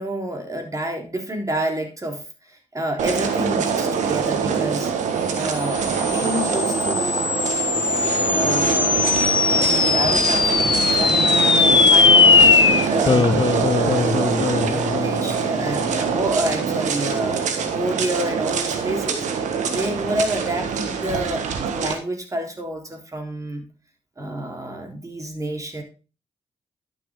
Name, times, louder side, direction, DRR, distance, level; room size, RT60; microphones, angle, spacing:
voice 1, 0.0-4.9 5.3-7.3 8.2-13.2 13.7-19.2 19.7-23.7 24.2-25.8, right 1 dB, 25° right, 3 dB, 3.8 m, -29 dB
sound 1, 3.0-21.9, right 6 dB, 90° right, 1.6 m, -24 dB
sound 2, 5.6-16.3, left 5 dB, 40° left, 0.7 m, -19 dB
11.5 x 7.3 x 3.7 m, 0.32 s
cardioid pair, 55°, 12 cm